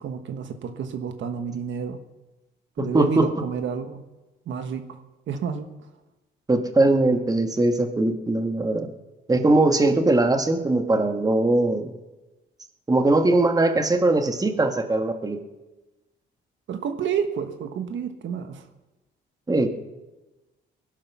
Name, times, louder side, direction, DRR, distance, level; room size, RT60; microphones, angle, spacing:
voice 1, 0.0-2.0 2.8-4.0 4.5-5.0 5.3-5.7 16.7-18.6, right 7 dB, 70° right, 7 dB, 1.4 m, -30 dB
voice 2, 2.8-3.3 6.5-8.9 9.3-11.9 12.9-15.4 19.5-19.7, right 2 dB, 20° right, 6 dB, 1.6 m, -21 dB
20.0 x 11.5 x 6.1 m, 1.1 s
cardioid pair, 90°, 20 cm